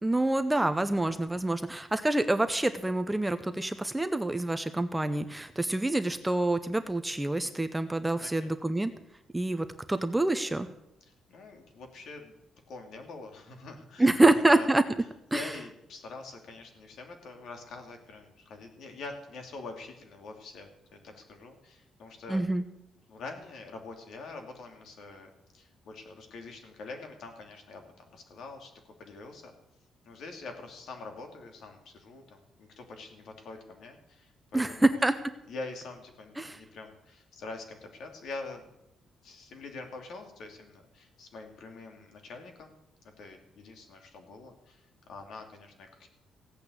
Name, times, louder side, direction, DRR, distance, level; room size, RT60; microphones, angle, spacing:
voice 1, 0.0-8.9 9.3-10.7 14.0-14.8 15.3-15.5 22.3-22.6 34.5-35.1 36.4-36.6, right 2 dB, 10° right, 9 dB, 0.7 m, -26 dB
voice 2, 8.2-8.6 11.0-12.3 12.7-14.7 15.3-22.4 23.1-25.3 25.5-28.7 29.0-29.5 30.0-35.0 35.5-38.6 39.2-42.7 43.2-46.1, left 3 dB, 65° left, 4 dB, 2.9 m, -45 dB
16.0 x 8.5 x 8.2 m, 0.83 s
cardioid pair, 150°, 0 cm